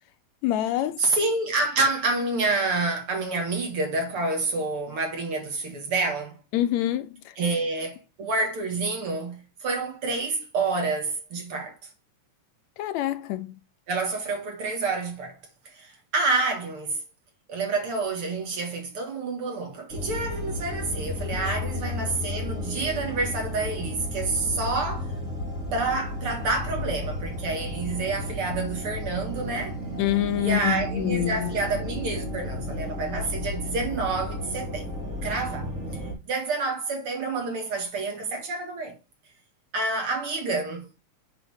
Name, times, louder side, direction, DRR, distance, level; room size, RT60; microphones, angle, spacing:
voice 1, 0.4-1.0 6.5-7.4 12.8-13.5 21.3-21.5 30.0-31.5, left 13 dB, 80° left, 1.8 m, -26 dB
voice 2, 1.0-6.4 7.4-11.8 13.9-15.4 15.7-17.0 17.5-25.1 25.7-29.8 30.4-34.9 35.2-35.7 36.3-39.0 39.7-40.9, right 3 dB, 50° right, 2.6 m, -28 dB
sound 1, 19.9-36.1, left 1 dB, 35° right, 2.9 m, -33 dB
8.1 x 4.5 x 3.5 m
omnidirectional pair, 3.3 m